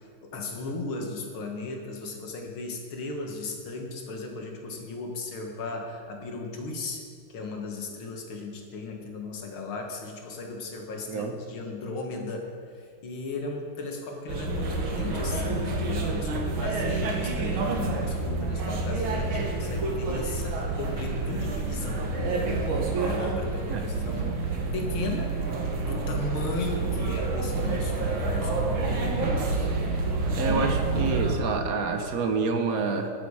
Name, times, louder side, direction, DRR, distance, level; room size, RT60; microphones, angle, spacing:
voice 1, 0.2-7.0 7.3-12.5 12.7-22.0 22.3-24.3 24.7-25.3 25.7-29.6, left 3 dB, 75° left, 1 dB, 2.3 m, -36 dB
sound 1, 14.3-31.4, right 3 dB, 75° right, 2.1 m, -28 dB
voice 2, 23.7-24.1 30.3-33.1, right 4 dB, 50° right, 5 dB, 1.3 m, -28 dB
12.0 x 10.0 x 4.9 m, 2.2 s
omnidirectional pair, 2.3 m